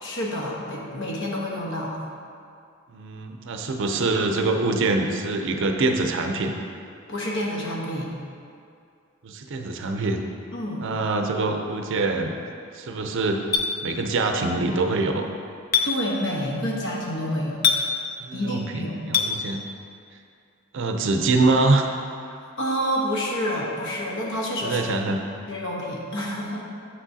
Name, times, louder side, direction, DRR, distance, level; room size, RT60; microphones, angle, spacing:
voice 1, 0.0-2.0 7.1-8.1 10.5-10.9 15.8-17.6 18.3-19.0 22.3-24.8 25.5-26.6, equal, 60° left, -2 dB, 1.1 m, -28 dB
voice 2, 2.9-6.5 9.2-10.2 10.8-12.4 12.8-13.4 13.8-15.3 18.2-19.6 20.7-21.8 24.6-25.2, right 3 dB, 60° right, 4 dB, 0.5 m, -24 dB
Chink clink, 13.5-13.7 15.7-15.9 17.6-17.8 19.1-19.3, left 7 dB, 45° left, 0.5 m, -20 dB
7.9 x 6.2 x 2.7 m, 2.4 s
head